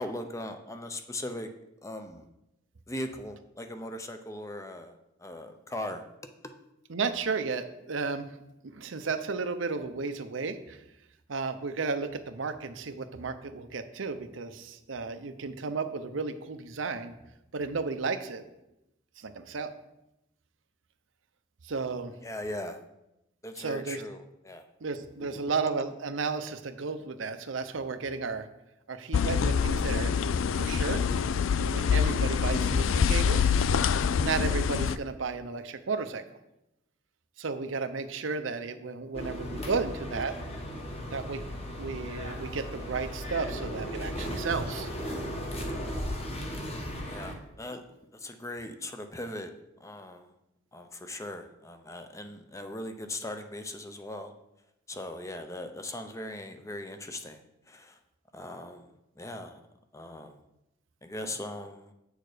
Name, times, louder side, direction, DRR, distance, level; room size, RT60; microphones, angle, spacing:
voice 1, 0.0-1.5 1.8-2.3 2.9-6.1 22.2-22.8 23.4-24.6 25.2-25.4 39.5-39.7 47.0-49.5 49.8-50.3 50.7-54.3 54.9-57.4 57.7-58.0 58.3-58.9 59.2-59.6 59.9-60.3 61.0-61.9, left 1 dB, 15° left, 7 dB, 0.6 m, -39 dB
voice 2, 6.9-8.3 8.7-10.8 11.3-17.1 17.5-18.4 19.2-19.7 21.6-22.1 23.6-24.0 24.8-28.5 28.9-30.1 30.5-31.0 31.6-33.5 34.2-36.2 37.4-40.3 41.1-41.4 41.8-44.9, right 4 dB, 80° right, 9 dB, 0.7 m, -33 dB
sound 1, 29.1-35.0, left 6 dB, 90° left, 0.4 m, -25 dB
sound 2, 39.1-47.3, equal, 30° left, 1.3 m, -36 dB
7.8 x 6.5 x 5.0 m, 0.88 s
head